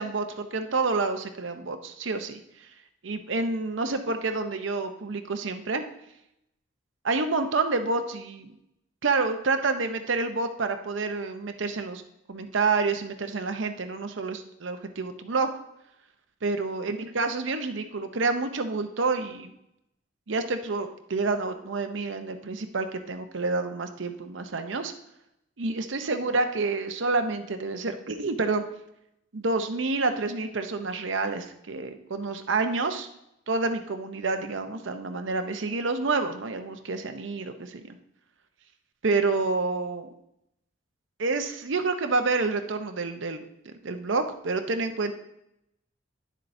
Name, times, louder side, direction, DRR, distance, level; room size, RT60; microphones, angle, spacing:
voice 1, 0.0-2.7 3.0-5.8 7.0-8.5 9.0-12.0 12.3-15.5 16.4-19.5 20.3-24.9 25.6-28.6 29.3-33.1 33.5-38.0 39.0-40.1 41.2-45.1, right 3 dB, 65° right, 6 dB, 0.7 m, -28 dB
10.5 x 7.4 x 2.6 m, 0.81 s
head